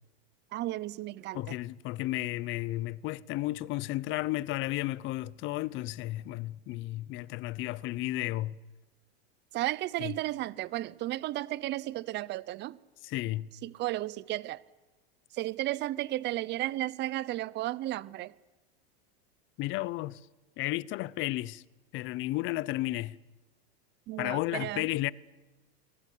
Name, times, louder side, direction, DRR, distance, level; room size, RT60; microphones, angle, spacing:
voice 1, 0.5-1.6 9.5-12.8 13.6-14.6 15.3-18.3 24.1-24.8, right 16 dB, 35° right, 0.8 m, -34 dB
voice 2, 1.3-8.6 10.0-10.1 13.0-13.5 19.6-20.2 20.6-21.6 21.9-23.2 24.2-25.1, left 17 dB, 40° left, 0.7 m, -33 dB
24.0 x 21.0 x 8.5 m
supercardioid pair, 145°, 32 cm